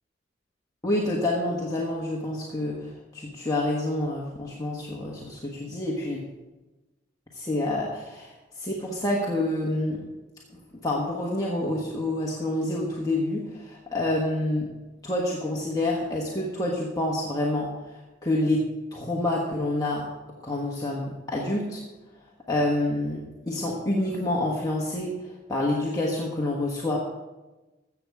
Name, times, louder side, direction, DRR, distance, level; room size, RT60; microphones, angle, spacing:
voice 1, 0.8-6.2 7.3-10.0 10.8-14.7 15.0-18.6 18.9-20.1 20.4-21.8 22.5-25.1 25.5-27.0, left 1 dB, 20° left, -4 dB, 1.4 m, -28 dB
14.0 x 7.9 x 4.8 m, 1.1 s
head